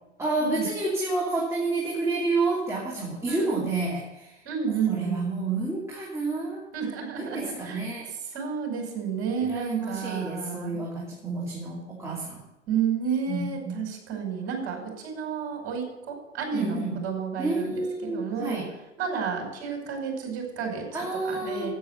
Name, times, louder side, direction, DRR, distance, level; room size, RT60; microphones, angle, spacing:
voice 1, 0.2-4.4 4.9-6.6 7.2-8.1 9.4-12.4 13.3-13.8 16.5-17.0 17.4-18.6 20.9-21.7, right 3 dB, 5° right, -5 dB, 2.8 m, -29 dB
voice 2, 3.3-3.7 4.5-5.3 6.7-7.8 8.3-10.8 12.7-18.6 19.0-20.8 21.2-21.7, right 6 dB, 40° right, 1 dB, 5.3 m, -31 dB
10.0 x 8.9 x 8.1 m, 0.93 s
figure-of-eight pair, 95°, 36 cm